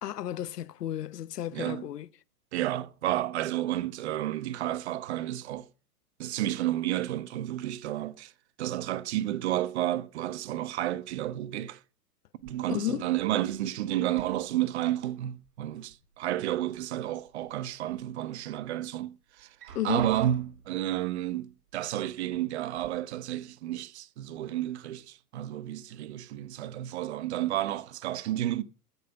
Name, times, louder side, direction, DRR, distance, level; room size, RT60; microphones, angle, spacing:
voice 1, 0.0-2.1 12.7-13.1 19.7-20.1, left 12 dB, 80° left, 0.9 m, -33 dB
voice 2, 1.5-1.9 2.5-5.7 6.2-8.3 8.6-11.8 12.4-28.6, right 13 dB, 45° right, 0.9 m, -31 dB
sound 1, 12.4-13.7 14.0-15.6 15.8-16.8 17.3-18.0 18.5-18.6 19.4-20.8 21.7-21.8 22.3-22.9, right 6 dB, 75° right, 3.5 m, -47 dB
15.0 x 5.5 x 6.9 m
hypercardioid pair, 150°, 47 cm